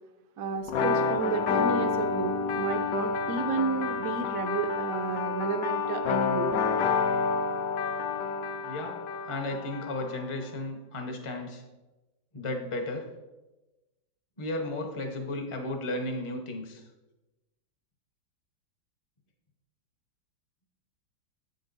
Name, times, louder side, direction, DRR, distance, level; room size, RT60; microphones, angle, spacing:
voice 1, 0.4-6.5, right 5 dB, 85° right, 6 dB, 0.7 m, -32 dB
sound 1, 0.7-10.3, left 5 dB, 75° left, 0.8 m, -29 dB
voice 2, 8.6-9.0 9.3-11.6 12.3-13.0 14.4-16.8, left 2 dB, 45° left, 3 dB, 0.4 m, -34 dB
8.0 x 5.3 x 4.0 m, 1.1 s
omnidirectional pair, 2.1 m